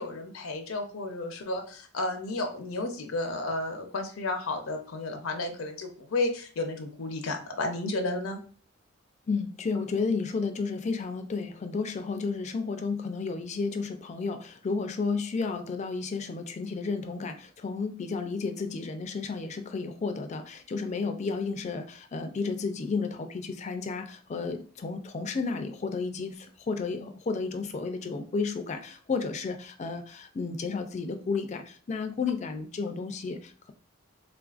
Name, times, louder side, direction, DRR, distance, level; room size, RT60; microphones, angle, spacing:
voice 1, 0.0-8.4, left 2 dB, 85° left, 5 dB, 0.6 m, -32 dB
voice 2, 9.3-33.7, left 4 dB, 35° left, 7 dB, 0.3 m, -32 dB
3.5 x 2.4 x 2.3 m, 0.43 s
head